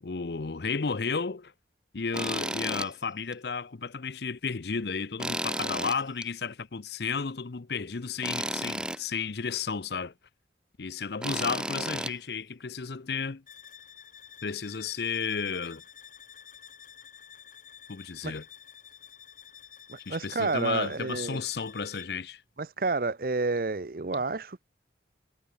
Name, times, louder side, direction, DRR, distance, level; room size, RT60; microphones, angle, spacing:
voice 1, 0.0-1.5 1.9-10.1 10.8-13.4 14.4-15.8 17.9-18.4 20.1-22.4, left 5 dB, 65° left, 0.7 m, -33 dB
Tools, 2.1-2.9 3.3-3.4 5.2-6.3 8.2-9.0 11.2-12.1, right 1 dB, 5° right, 0.8 m, -32 dB
sound 1, 13.5-22.3, left 9 dB, 45° left, 5.6 m, -50 dB
voice 2, 19.9-21.4 22.6-24.7, right 3 dB, 50° right, 0.7 m, -30 dB
head